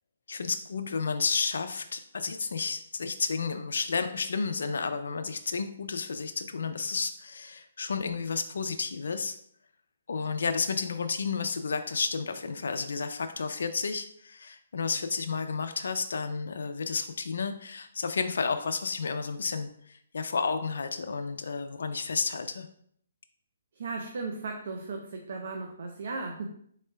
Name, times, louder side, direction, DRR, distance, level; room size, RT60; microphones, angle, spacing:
voice 1, 0.3-9.3 10.1-22.7, left 5 dB, 75° left, 7 dB, 0.4 m, -31 dB
voice 2, 23.7-26.5, right 3 dB, 60° right, 3 dB, 0.5 m, -36 dB
3.6 x 3.2 x 3.3 m, 0.65 s
hypercardioid pair, 165°, 0 cm